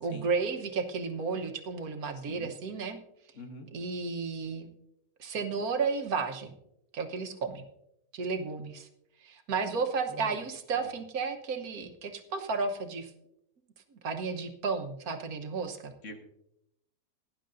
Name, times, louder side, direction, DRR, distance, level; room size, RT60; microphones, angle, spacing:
voice 1, 0.0-3.0 3.7-4.7 5.2-6.5 6.9-7.6 8.1-8.9 9.2-13.1 13.9-15.9, right 4 dB, 75° right, 6 dB, 1.5 m, -33 dB
voice 2, 3.3-3.7 10.1-10.4 10.8-10.9 16.0-16.3, left 1 dB, 55° left, 4 dB, 1.7 m, -45 dB
18.0 x 10.5 x 2.6 m, 0.81 s
omnidirectional pair, 1.6 m